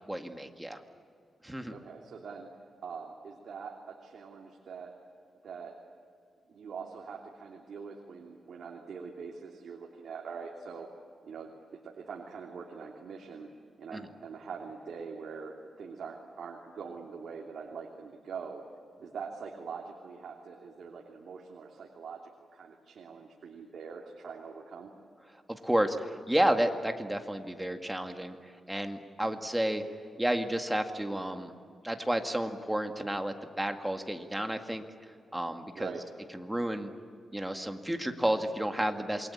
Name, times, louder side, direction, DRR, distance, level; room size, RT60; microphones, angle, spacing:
voice 1, 0.1-0.8 1.4-1.7 13.9-14.0 25.5-28.4 28.7-29.8 30.2-31.5 31.8-34.8 35.3-35.9 36.3-36.9 37.3-39.3, right 1 dB, 5° right, 5 dB, 2.0 m, -31 dB
voice 2, 1.7-2.5 2.8-4.9 5.4-5.8 6.5-10.9 11.2-13.5 13.8-18.6 19.0-24.9 29.2-29.4 35.7-36.0, right 5 dB, 70° right, 0 dB, 3.0 m, -43 dB
28.0 x 23.0 x 8.7 m, 2.4 s
cardioid pair, 110°, 0 cm